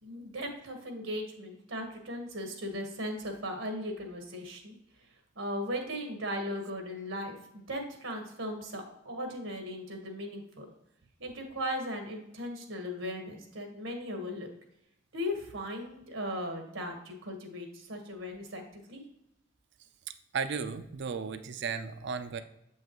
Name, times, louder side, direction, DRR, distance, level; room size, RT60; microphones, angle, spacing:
voice 1, 0.0-5.1 5.3-10.7 11.2-14.5 15.1-19.0, equal, 85° right, 4 dB, 1.4 m, -37 dB
voice 2, 20.3-22.4, right 5 dB, 60° right, 11 dB, 0.5 m, -35 dB
7.6 x 5.5 x 3.0 m, 0.82 s
head